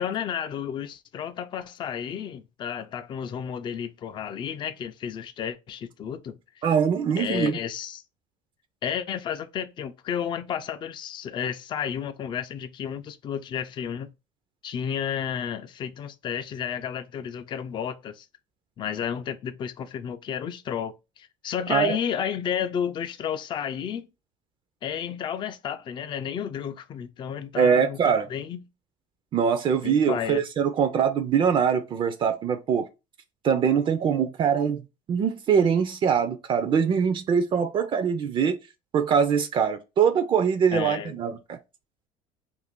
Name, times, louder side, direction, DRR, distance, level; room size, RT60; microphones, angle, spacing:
voice 1, 0.0-6.7 7.2-8.0 8.8-14.1 14.6-18.3 18.8-24.1 24.8-28.6 29.8-30.4 40.7-41.1, left 8 dB, 35° left, 0.4 m, -32 dB
voice 2, 6.6-7.6 21.7-22.0 27.6-28.3 29.3-32.9 33.4-34.8 35.1-38.6 38.9-41.6, right 7 dB, 40° right, 0.4 m, -23 dB
2.5 x 2.5 x 3.5 m
supercardioid pair, 105°, 13 cm